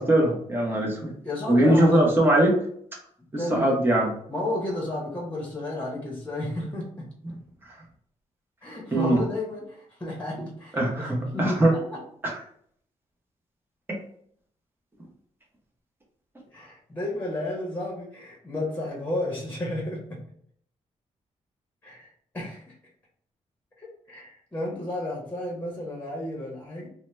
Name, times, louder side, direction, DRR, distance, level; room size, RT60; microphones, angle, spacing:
voice 1, 0.0-1.1 1.5-2.6 3.3-4.1 8.9-9.2 10.7-11.8 12.2-12.4 13.9-14.0, right 1 dB, 15° right, -1 dB, 0.8 m, -21 dB
voice 2, 1.2-2.1 3.4-3.9 4.3-7.1 8.6-12.0 16.5-20.2 21.8-22.1 22.3-22.7 23.8-26.9, left 1 dB, 15° left, -2 dB, 1.0 m, -32 dB
2.7 x 2.1 x 3.2 m, 0.63 s
cardioid pair, 95°, 13 cm